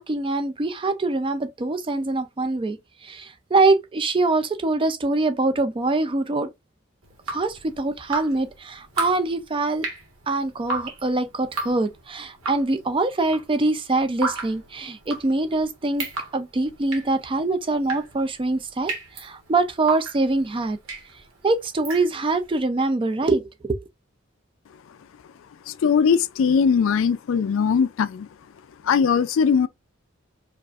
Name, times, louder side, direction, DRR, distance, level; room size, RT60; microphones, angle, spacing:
voice 1, 0.0-6.5 7.3-9.9 10.3-16.1 16.3-20.8 21.4-23.8, right 2 dB, 25° right, 0.4 m, -24 dB
Drip, 7.0-22.5, right 3 dB, 80° right, 1.3 m, -35 dB
voice 2, 25.7-28.3 28.8-29.7, left 6 dB, 65° left, 0.3 m, -20 dB
4.7 x 2.5 x 2.4 m
head